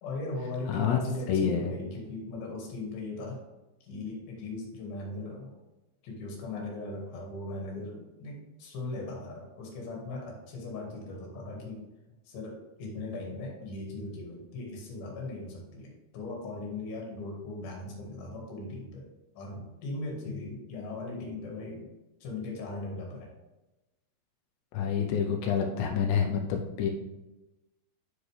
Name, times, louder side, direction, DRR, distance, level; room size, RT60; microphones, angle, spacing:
voice 1, 0.0-3.4 3.8-5.6 6.0-11.8 12.2-21.9 22.2-23.3, left 2 dB, 65° left, -1 dB, 3.4 m, -39 dB
voice 2, 0.7-1.0 1.3-1.7 20.3-20.4 24.7-26.9, left 7 dB, 90° left, 3 dB, 3.0 m, -28 dB
7.8 x 6.6 x 3.3 m, 1.0 s
omnidirectional pair, 4.9 m